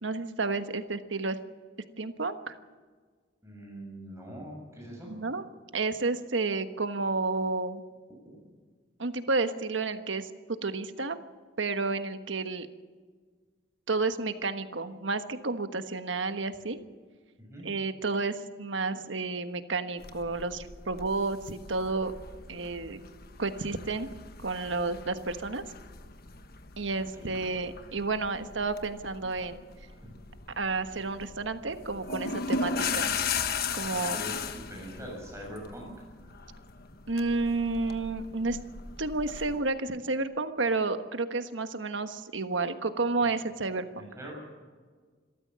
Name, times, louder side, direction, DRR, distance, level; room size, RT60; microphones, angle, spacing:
voice 1, 0.0-1.4 2.0-2.6 5.1-5.4 5.7-7.8 9.0-10.3 10.6-11.2 11.6-12.7 13.9-16.8 17.6-22.1 22.5-23.0 23.4-24.1 24.4-25.6 26.8-29.6 30.6-33.2 33.7-34.2 37.1-38.6 39.0-44.1, right 3 dB, 80° right, 9 dB, 1.3 m, -31 dB
voice 2, 3.4-5.1 17.4-17.7 26.9-27.4 33.7-35.9 44.0-44.3, equal, 15° right, -1 dB, 7.1 m, -43 dB
sound 1, 20.0-39.6, left 5 dB, 55° left, 1.3 m, -38 dB
26.5 x 13.5 x 7.5 m, 1.5 s
head